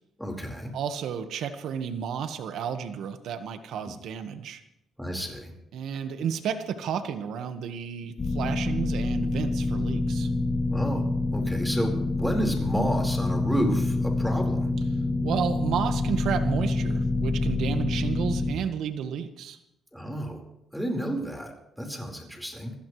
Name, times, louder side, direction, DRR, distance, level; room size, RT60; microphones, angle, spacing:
voice 1, 0.2-0.7 3.9-4.0 5.0-5.5 10.7-14.7 19.9-20.4 20.7-22.7, equal, ahead, 1 dB, 4.7 m, -31 dB
voice 2, 0.7-4.6 5.7-10.3 15.2-19.6, right 8 dB, 75° right, 8 dB, 1.5 m, -32 dB
sound 1, 8.2-18.5, left 2 dB, 40° left, 2.3 m, -27 dB
26.0 x 16.0 x 3.3 m, 0.83 s
cardioid pair, 90°, 0 cm